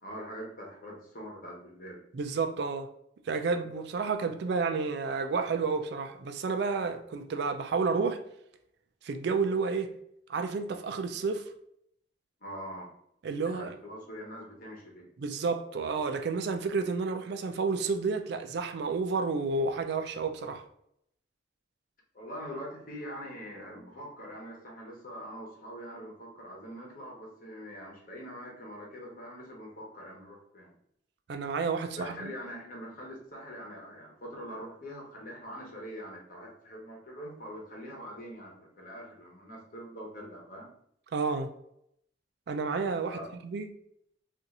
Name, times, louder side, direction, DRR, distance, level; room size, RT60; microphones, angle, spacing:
voice 1, 0.0-2.0 12.4-12.9 13.4-15.1 22.1-30.7 32.0-40.7 43.0-43.3, equal, 50° left, 1.0 m, -43 dB
voice 2, 2.1-2.9 3.3-8.2 9.0-9.9 10.3-11.5 13.2-13.8 15.2-20.6 31.3-32.3 41.1-41.5 42.5-43.7, right 4 dB, 60° right, 0.3 m, -30 dB
2.7 x 2.4 x 4.0 m
head